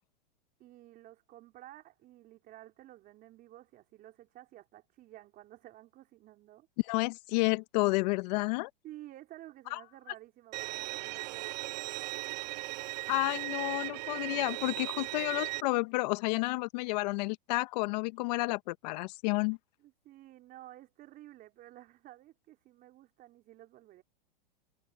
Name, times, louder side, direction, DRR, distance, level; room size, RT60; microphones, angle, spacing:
voice 1, 0.6-6.7 8.8-11.6 19.8-24.0, right 15 dB, 30° right, 4.3 m, -53 dB
voice 2, 6.9-8.7 9.7-9.8 13.1-19.6, left 24 dB, 45° left, 1.3 m, -31 dB
Bowed string instrument, 10.5-15.6, right 21 dB, 45° right, 0.9 m, -37 dB
hypercardioid pair, 145°, 29 cm